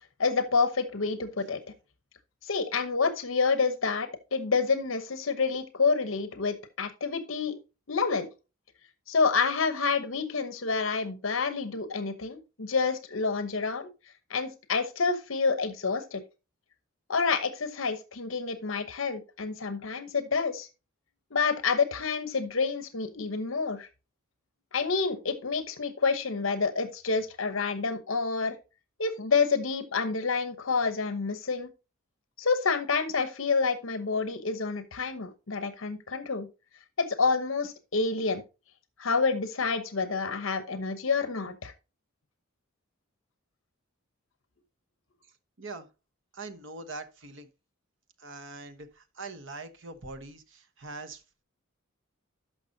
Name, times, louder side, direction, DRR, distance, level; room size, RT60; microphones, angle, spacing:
voice 1, 0.2-1.6 2.4-7.6 7.9-8.3 9.1-13.9 14.3-16.2 17.1-20.7 21.3-23.9 24.7-28.5 29.0-31.7 32.4-36.5 37.0-38.4 39.0-41.7, left 4 dB, 65° left, 0.9 m, -28 dB
voice 2, 45.6-45.9 46.3-47.5 48.2-51.2, right 3 dB, 60° right, 1.1 m, -42 dB
13.0 x 5.8 x 2.7 m
head